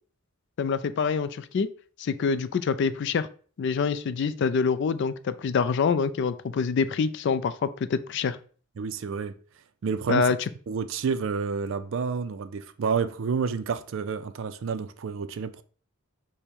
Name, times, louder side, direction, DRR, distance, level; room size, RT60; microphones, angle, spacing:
voice 1, 0.6-1.7 2.0-3.3 3.6-8.4 10.1-10.4, left 5 dB, 55° left, 0.3 m, -26 dB
voice 2, 8.8-9.3 9.8-10.3 10.7-15.6, right 5 dB, 60° right, 0.4 m, -29 dB
5.1 x 2.1 x 4.5 m
head